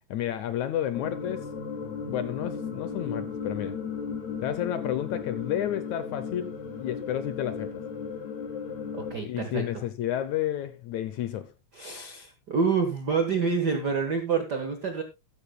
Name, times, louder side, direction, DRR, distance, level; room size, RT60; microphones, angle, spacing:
voice 1, 0.1-1.5 2.1-3.8 4.4-7.7 9.2-11.5, left 11 dB, 75° left, 1.8 m, -31 dB
sound 1, 0.9-9.2, left 6 dB, 55° left, 3.4 m, -36 dB
voice 2, 8.9-9.8 11.7-15.0, right 5 dB, 80° right, 0.9 m, -28 dB
14.0 x 13.0 x 2.2 m
omnidirectional pair, 4.0 m